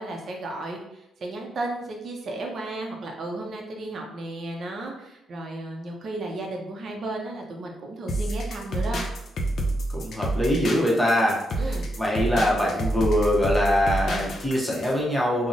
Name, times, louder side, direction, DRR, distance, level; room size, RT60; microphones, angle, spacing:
voice 1, 0.0-9.0 11.6-11.9, right 2 dB, 55° right, 1 dB, 0.5 m, -34 dB
sound 1, 8.1-14.9, right 1 dB, 60° left, 0.5 m, -28 dB
voice 2, 9.9-15.5, equal, 5° left, -4 dB, 0.7 m, -23 dB
3.7 x 2.0 x 2.5 m, 0.86 s
cardioid pair, 90°, 0 cm